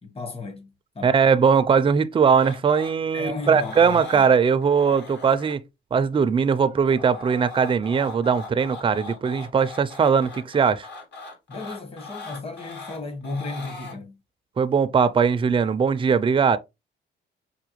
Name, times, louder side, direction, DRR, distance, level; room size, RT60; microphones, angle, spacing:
voice 1, 0.0-1.1 3.1-4.3 11.5-14.2, left 3 dB, 30° left, 1.2 m, -34 dB
voice 2, 1.0-5.6 5.9-10.9 14.6-16.6, right 6 dB, 25° right, 0.4 m, -20 dB
sound 1, 2.4-2.9 3.4-4.3 4.6-5.5 6.6-13.9 15.7-15.8, left 3 dB, 60° left, 2.0 m, -40 dB
5.6 x 2.2 x 3.0 m
cardioid pair, 90°, 20 cm